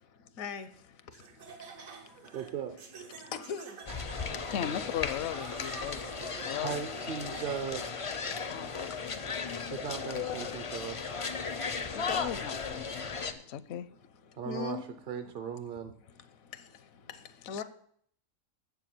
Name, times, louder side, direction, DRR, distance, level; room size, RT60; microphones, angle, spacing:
voice 1, 0.4-0.7 3.3-3.8 9.7-10.6 14.5-14.9 15.1-15.3 17.5-17.6, left 7 dB, 85° left, 1.2 m, -38 dB
Laughter, 1.1-7.9, right 5 dB, 80° right, 1.6 m, -49 dB
voice 2, 2.3-2.7 6.6-7.8 9.7-11.2 14.4-14.8 15.1-15.9, right 8 dB, 55° right, 0.7 m, -37 dB
sound 1, 3.9-13.3, left 5 dB, 50° left, 0.4 m, -36 dB
voice 3, 4.5-6.0 6.4-6.8 8.5-9.1 11.8-13.9 17.5-17.6, left 11 dB, 65° left, 0.7 m, -37 dB
7.2 x 7.1 x 7.6 m
omnidirectional pair, 1.4 m